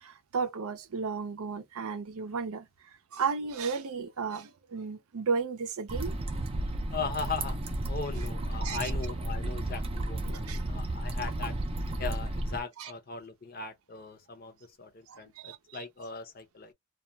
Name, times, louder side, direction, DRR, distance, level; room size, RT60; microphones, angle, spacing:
voice 1, 0.3-2.6 3.1-6.1 8.6-8.9 10.3-10.6 12.8-12.9 15.1-15.6, right 5 dB, 80° right, 0.5 m, -33 dB
sound 1, 5.9-12.6, right 1 dB, 25° right, 0.4 m, -33 dB
voice 2, 6.9-11.6 12.0-16.7, left 4 dB, 40° left, 0.6 m, -39 dB
2.3 x 2.2 x 2.7 m
head